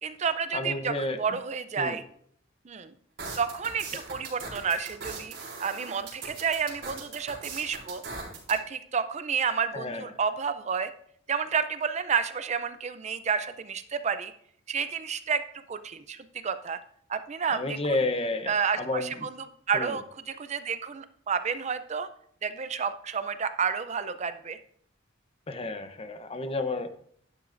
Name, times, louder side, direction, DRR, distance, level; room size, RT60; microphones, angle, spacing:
voice 1, 0.0-2.0 2.6-3.0 3.4-5.3 5.6-8.0 8.5-10.9 11.3-14.3 14.7-16.8 17.1-18.0 18.5-19.4 19.7-22.1 22.4-24.6, right 6 dB, 35° right, 11 dB, 0.5 m, -30 dB
voice 2, 0.5-1.2 1.8-2.0 9.7-10.0 17.5-19.3 19.7-20.0 25.5-26.9, left 2 dB, 30° left, 8 dB, 0.8 m, -31 dB
sound 1, 3.2-8.6, right 4 dB, 65° right, 4.3 m, -39 dB
12.0 x 11.0 x 2.6 m, 0.65 s
head